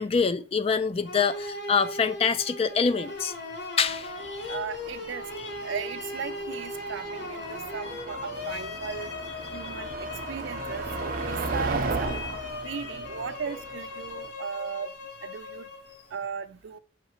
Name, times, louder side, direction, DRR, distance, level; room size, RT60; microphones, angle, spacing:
voice 1, 0.0-3.3 3.8-4.6, left 5 dB, 30° left, 0.3 m, -26 dB
sound 1, 1.0-16.1, left 2 dB, 60° left, 1.0 m, -38 dB
Motor vehicle (road), 3.9-14.3, right 3 dB, 50° right, 0.7 m, -36 dB
voice 2, 4.5-5.3 5.6-9.1 9.5-12.1 12.6-14.9 15.2-15.7 16.1-16.8, right 6 dB, 75° right, 0.4 m, -37 dB
5.9 x 3.1 x 2.9 m
head